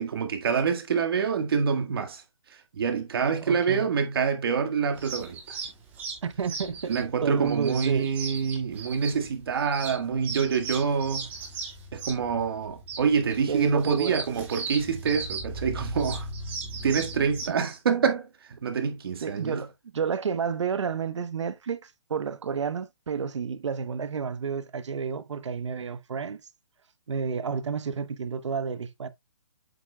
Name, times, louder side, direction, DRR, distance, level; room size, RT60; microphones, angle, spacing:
voice 1, 0.0-2.2 2.7-5.6 6.9-11.3 11.9-16.3 16.8-18.3 18.6-19.6, right 6 dB, 50° right, 1.8 m, -26 dB
voice 2, 3.5-3.9 6.2-7.0 7.2-8.1 13.5-14.3 19.2-26.4 27.1-29.1, right 6 dB, 70° right, 1.0 m, -30 dB
sound 1, 4.9-17.5, right 3 dB, 10° right, 1.7 m, -37 dB
8.1 x 7.3 x 2.3 m
hypercardioid pair, 170°, 16 cm